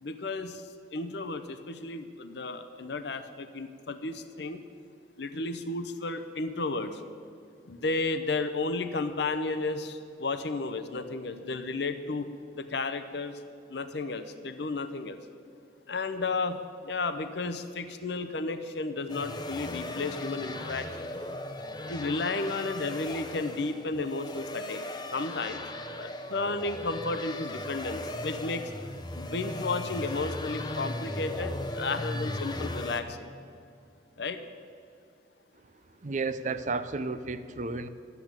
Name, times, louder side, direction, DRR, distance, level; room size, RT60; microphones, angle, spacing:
voice 1, 0.0-4.6 5.2-7.0 7.7-12.3 12.5-13.4 13.7-15.2 15.9-21.1 21.9-24.8 25.1-25.7 26.0-28.7 29.1-33.3 34.2-34.4, left 3 dB, 60° left, 10 dB, 0.7 m, -33 dB
sound 1, 19.1-33.0, left 1 dB, 20° left, 0.7 m, -37 dB
voice 2, 36.0-37.9, right 3 dB, 40° right, 12 dB, 0.5 m, -32 dB
12.0 x 8.3 x 8.8 m, 2.5 s
head